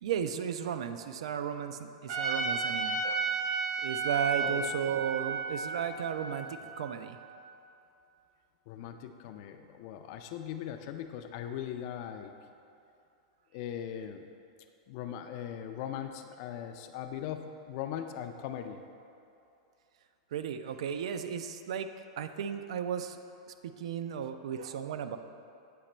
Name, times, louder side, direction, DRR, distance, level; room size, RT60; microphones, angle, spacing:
voice 1, 0.0-3.3 3.8-7.2 20.3-21.9 22.2-23.2 23.6-25.2, right 8 dB, 75° right, 9 dB, 0.3 m, -35 dB
Trumpet, 2.1-7.3, right 4 dB, 50° right, 0.8 m, -33 dB
voice 2, 8.7-12.3 13.5-14.3 14.9-18.8, left 10 dB, 40° left, 7 dB, 0.3 m, -39 dB
8.6 x 3.0 x 4.2 m, 2.6 s
supercardioid pair, 165°, 3 cm